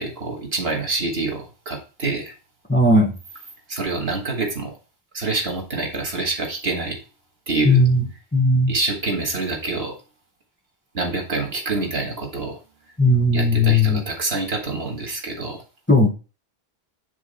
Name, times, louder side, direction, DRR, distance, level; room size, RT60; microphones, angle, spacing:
voice 1, 0.0-2.3 3.7-4.8 5.1-7.0 7.5-7.8 8.7-10.0 10.9-12.6 13.3-15.6, right 3 dB, 75° right, 2 dB, 2.2 m, -26 dB
voice 2, 2.7-3.1 7.6-8.0 8.3-8.7 13.0-14.0 15.9-16.1, left 2 dB, 10° left, 0 dB, 1.7 m, -16 dB
10.0 x 3.8 x 5.5 m, 0.33 s
omnidirectional pair, 1.1 m